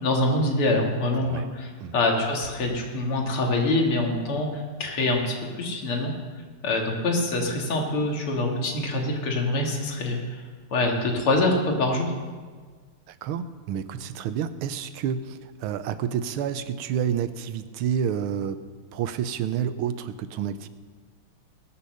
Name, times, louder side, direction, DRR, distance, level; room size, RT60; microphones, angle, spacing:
voice 1, 0.0-6.1 6.6-10.2 10.7-12.1, left 2 dB, 90° left, 1 dB, 3.0 m, -25 dB
voice 2, 1.1-1.5 1.8-1.9 13.1-18.6 18.9-20.7, right 8 dB, 90° right, 12 dB, 1.6 m, -29 dB
21.0 x 7.1 x 6.5 m, 1.5 s
omnidirectional pair, 2.3 m